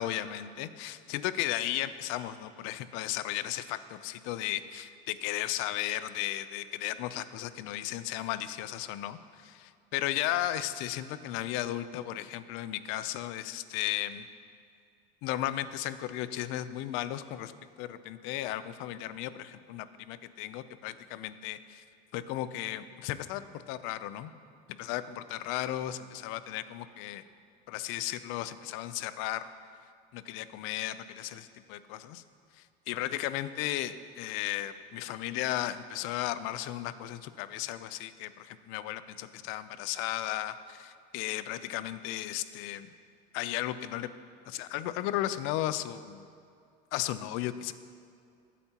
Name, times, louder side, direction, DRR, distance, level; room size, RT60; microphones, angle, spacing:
voice 1, 0.0-14.3 15.2-17.5 17.8-21.8 22.1-24.3 24.7-27.2 27.7-29.5 30.1-32.2 32.6-42.9 43.3-44.1 44.5-46.3 46.9-47.7, left 13 dB, 70° left, 14 dB, 0.5 m, -35 dB
14.5 x 8.3 x 2.9 m, 2.4 s
cardioid pair, 160°, 21 cm